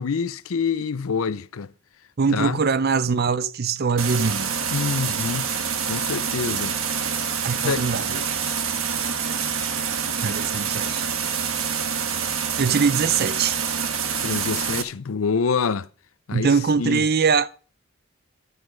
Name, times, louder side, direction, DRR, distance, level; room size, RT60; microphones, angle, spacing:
voice 1, 0.0-1.7 2.3-2.6 4.7-5.5 5.9-6.8 7.6-7.8 14.2-15.9 16.3-17.0, left 5 dB, 70° left, 0.5 m, -26 dB
voice 2, 2.2-4.5 7.4-8.2 10.2-11.0 12.6-13.6 16.3-17.5, right 5 dB, 45° right, 0.5 m, -22 dB
sound 1, 4.0-14.8, right 6 dB, 70° right, 1.3 m, -26 dB
12.5 x 7.9 x 5.2 m
head